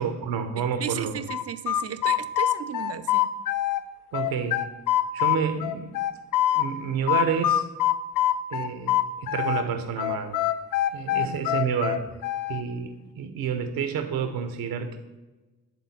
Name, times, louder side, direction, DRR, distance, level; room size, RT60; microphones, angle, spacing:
voice 1, 0.0-1.2 4.1-4.6 5.1-6.1 6.5-7.7 8.5-10.4 10.9-12.0 12.5-15.0, right 7 dB, 80° right, 8 dB, 0.8 m, -29 dB
voice 2, 0.6-3.3 11.2-11.5, right 9 dB, 45° right, 12 dB, 0.5 m, -35 dB
sound 1, 1.3-3.8 4.1-6.7 7.1-9.7 10.0-12.6, left 13 dB, 65° left, 0.5 m, -24 dB
9.8 x 3.7 x 4.2 m, 1.2 s
hypercardioid pair, 40°, 35 cm